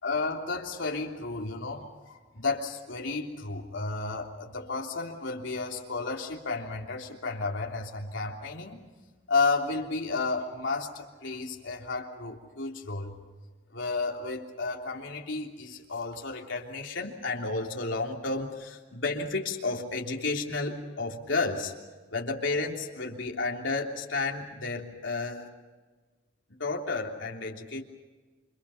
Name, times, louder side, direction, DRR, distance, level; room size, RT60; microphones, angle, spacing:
voice 1, 0.0-8.8 9.3-13.2 13.7-21.7 22.1-25.5 26.5-27.8, left 3 dB, 70° left, 0 dB, 3.3 m, -32 dB
29.5 x 26.0 x 5.8 m, 1.3 s
head